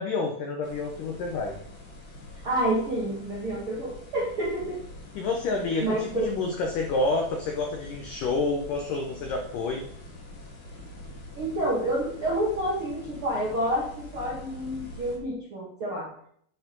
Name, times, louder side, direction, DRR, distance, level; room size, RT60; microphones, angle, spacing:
voice 1, 0.0-1.6 5.2-9.8, left 3 dB, 80° left, 2 dB, 1.8 m, -29 dB
sound 1, 0.6-15.2, left 1 dB, 45° left, 1.4 m, -45 dB
voice 2, 2.4-4.8 5.8-6.3 11.3-16.1, right 1 dB, 60° right, -5 dB, 1.3 m, -28 dB
9.5 x 4.8 x 5.3 m, 0.66 s
omnidirectional pair, 5.1 m